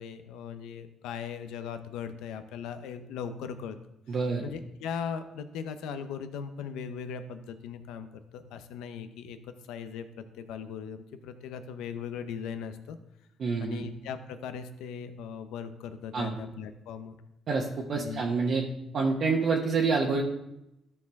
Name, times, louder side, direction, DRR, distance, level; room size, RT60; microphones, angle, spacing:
voice 1, 0.0-3.8 4.1-4.2 4.4-13.0 13.6-17.2 17.9-18.2, left 7 dB, 90° left, 9 dB, 0.6 m, -39 dB
voice 2, 4.1-4.4 13.4-13.8 16.1-16.4 17.5-18.6 18.9-20.2, right 4 dB, 60° right, -2 dB, 1.1 m, -27 dB
13.0 x 4.7 x 3.5 m, 0.87 s
cardioid pair, 85°, 0 cm